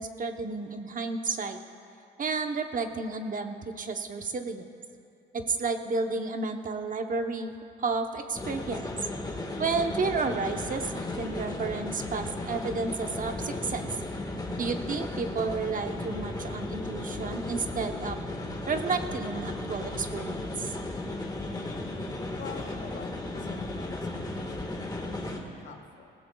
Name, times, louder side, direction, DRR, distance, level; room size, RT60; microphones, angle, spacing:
voice 1, 0.0-1.6 2.2-4.7 5.3-7.5 7.8-8.9 9.6-13.9 14.6-18.2 18.7-20.7, right 4 dB, 45° right, 6 dB, 0.9 m, -31 dB
sound 1, 8.3-25.4, left 2 dB, 20° left, 1.6 m, -35 dB
voice 2, 22.4-26.1, left 5 dB, 65° left, 4 dB, 1.4 m, -47 dB
19.5 x 16.5 x 2.3 m, 2.4 s
cardioid pair, 90°, 20 cm